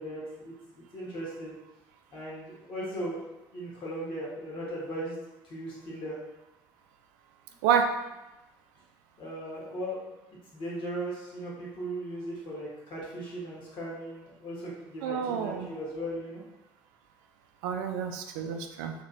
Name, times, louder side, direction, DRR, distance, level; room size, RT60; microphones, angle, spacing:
voice 1, 0.0-1.6 2.1-3.2 3.5-5.1 5.4-6.2 9.2-10.1 10.5-16.4, right 1 dB, 50° left, -5 dB, 1.4 m, -37 dB
voice 2, 15.0-15.7 17.6-18.9, right 7 dB, 65° right, 5 dB, 0.4 m, -28 dB
3.2 x 2.9 x 2.7 m, 1.0 s
figure-of-eight pair, 55°, 11 cm